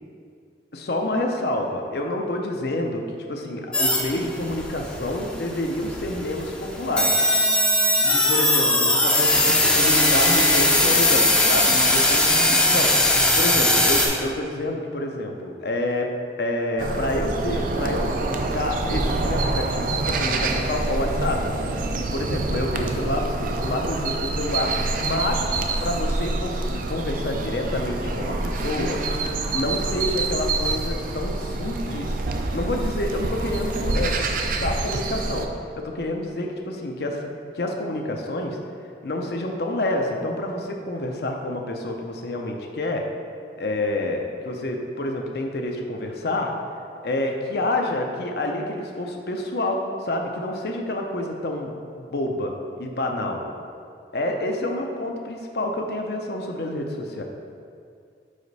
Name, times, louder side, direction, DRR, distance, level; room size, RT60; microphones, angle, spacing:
voice 1, 0.7-3.0 3.3-7.2 8.0-12.9 13.4-16.1 16.4-21.4 22.0-25.5 25.8-29.0 29.5-32.2 32.5-35.5 35.8-37.3 37.5-38.6 39.0-43.0 43.6-46.5 47.0-51.7 52.0-53.4 54.1-57.2, left 1 dB, 60° left, 2 dB, 0.6 m, -28 dB
sound 1, 3.7-14.1, left 1 dB, 5° left, 0.5 m, -20 dB
sound 2, 16.8-35.5, right 2 dB, 50° right, 0.4 m, -26 dB
5.0 x 4.9 x 4.0 m, 2.4 s
head